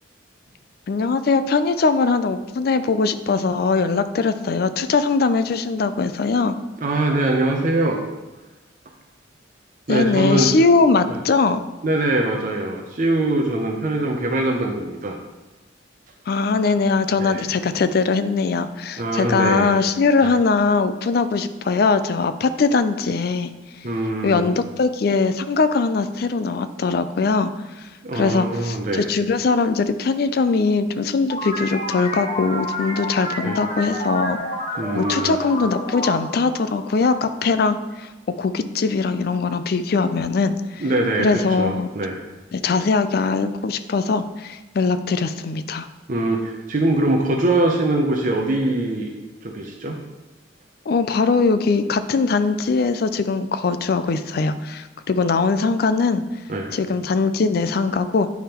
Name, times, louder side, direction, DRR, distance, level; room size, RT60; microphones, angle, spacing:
voice 1, 0.9-6.6 9.9-11.6 16.3-23.5 24.2-27.5 28.1-34.4 34.9-40.8 41.2-41.9 42.5-45.9 50.9-56.2 56.7-58.3, left 4 dB, 55° left, 11 dB, 0.4 m, -21 dB
voice 2, 6.8-8.0 9.9-10.6 11.1-11.2 11.8-15.2 17.2-17.4 19.0-19.7 23.8-24.4 28.0-29.0 33.4-33.6 34.8-35.4 40.8-42.2 46.1-49.1 49.4-50.0 56.5-56.7, right 2 dB, 45° right, 1 dB, 0.6 m, -22 dB
sound 1, 31.3-37.5, left 1 dB, 35° left, 1.2 m, -30 dB
9.3 x 3.5 x 4.3 m, 1.2 s
head